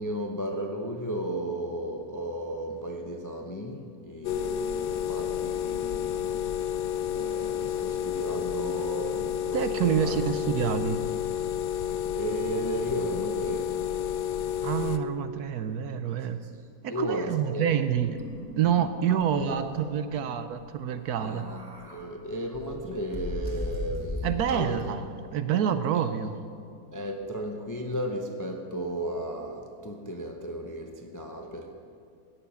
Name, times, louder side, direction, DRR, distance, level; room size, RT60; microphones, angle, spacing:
voice 1, 0.0-6.3 7.1-10.2 12.1-13.8 16.4-16.5 16.9-17.8 19.1-19.7 21.2-25.1 25.9-26.2 26.9-31.7, right 1 dB, 20° left, 3 dB, 0.5 m, -35 dB
sound 1, 4.2-15.0, left 9 dB, 85° left, 1.2 m, -30 dB
voice 2, 9.5-11.0 14.6-16.4 16.8-18.2 18.6-21.5 24.2-25.0 25.3-26.3, right 9 dB, 70° right, 10 dB, 1.1 m, -27 dB
sound 2, 17.9-18.9 19.2-19.3 19.6-19.8 21.0-22.0 22.5-24.8, left 1 dB, 5° right, 2.2 m, -36 dB
17.0 x 7.1 x 6.9 m, 2.3 s
omnidirectional pair, 1.9 m